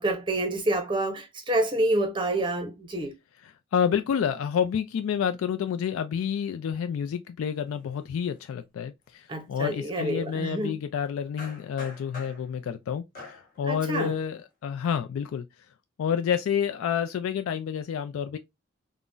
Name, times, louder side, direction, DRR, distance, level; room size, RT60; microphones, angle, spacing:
voice 1, 0.0-3.1 9.3-10.8 13.7-14.1, right 1 dB, 25° right, 0.6 m, -28 dB
voice 2, 3.4-15.5 16.0-18.4, left 7 dB, 85° left, 0.3 m, -29 dB
sound 1, 7.6-7.7 7.9-8.3 11.4-12.7 13.1-13.6 14.2-14.4, left 3 dB, 40° left, 1.1 m, -45 dB
3.7 x 2.1 x 2.4 m
head